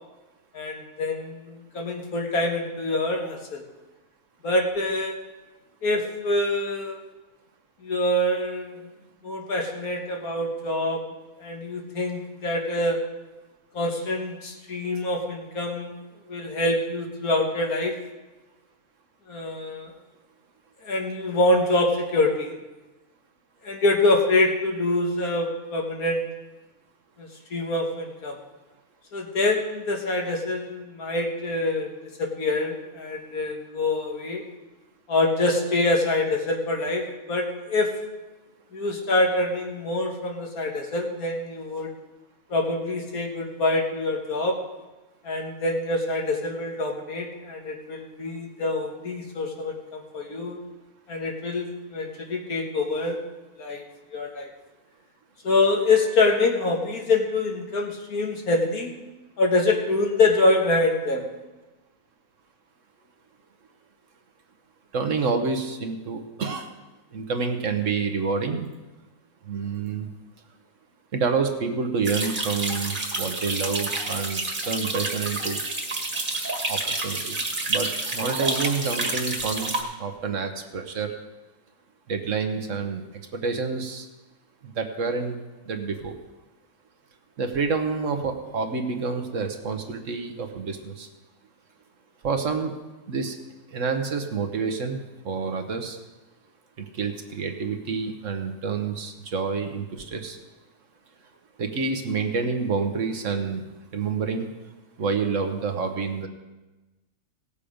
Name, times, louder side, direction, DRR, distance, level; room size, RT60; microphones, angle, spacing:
voice 1, 0.5-3.7 4.4-5.2 5.8-7.0 7.8-8.9 9.2-11.0 11.4-13.0 13.7-15.9 16.3-18.0 19.3-19.9 20.8-22.6 23.6-26.2 27.2-28.4 29.1-34.4 35.1-37.9 38.7-41.9 42.5-44.6 45.2-50.6 51.1-53.2 53.6-53.8 54.1-54.5 55.4-58.9 59.4-61.3, left 2 dB, 70° left, 2 dB, 2.0 m, -25 dB
voice 2, 64.9-66.7 67.1-68.7 69.5-70.1 71.1-75.6 76.7-77.4 77.7-81.1 82.1-83.0 83.3-84.1 84.8-85.4 85.7-86.1 87.4-91.1 92.2-92.7 93.1-93.3 93.7-96.0 97.0-100.4 101.6-103.7 103.9-104.5 105.0-106.3, right 5 dB, 60° right, 6 dB, 1.3 m, -28 dB
sound 1, 72.0-79.8, right 2 dB, 35° right, 1.7 m, -29 dB
18.0 x 7.0 x 5.1 m, 1.1 s
omnidirectional pair, 1.6 m